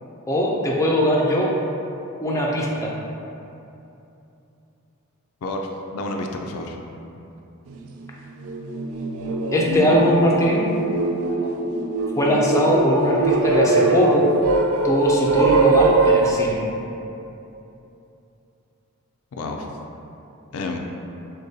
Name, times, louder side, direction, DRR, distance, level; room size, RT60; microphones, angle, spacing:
voice 1, 0.3-1.5 2.2-2.9 9.5-10.6 12.2-14.3 14.8-16.6, equal, 15° left, -3 dB, 0.4 m, -20 dB
voice 2, 5.4-6.8 19.3-19.7 20.5-20.8, left 2 dB, 80° left, 2 dB, 0.4 m, -30 dB
sound 1, 7.7-7.8 8.3-16.3, right 3 dB, 80° right, 0.3 m, -21 dB
6.4 x 2.2 x 2.7 m, 2.8 s
head